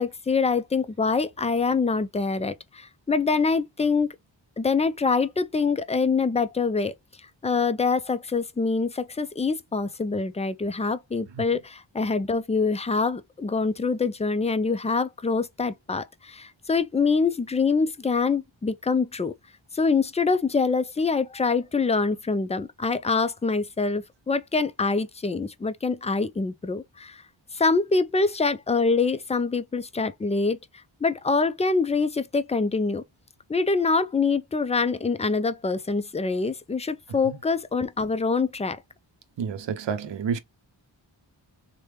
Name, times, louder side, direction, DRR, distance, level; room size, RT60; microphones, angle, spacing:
voice 1, 0.0-4.1 4.6-6.9 7.4-19.3 19.7-27.2 27.5-30.6 31.0-33.0 33.5-38.8, left 4 dB, 15° left, 0.3 m, -25 dB
voice 2, 39.4-40.4, right 7 dB, 65° right, 0.6 m, -29 dB
3.2 x 2.2 x 2.9 m
cardioid pair, 45°, 47 cm